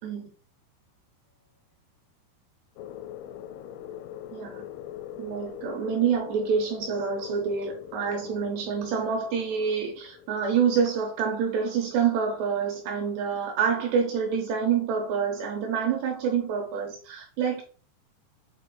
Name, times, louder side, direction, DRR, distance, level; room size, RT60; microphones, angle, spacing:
sound 1, 2.8-10.8, left 10 dB, 85° left, 2.9 m, -43 dB
voice 1, 4.3-4.6 5.2-17.6, right 6 dB, 75° right, 2.7 m, -27 dB
7.7 x 2.9 x 5.1 m
omnidirectional pair, 6.0 m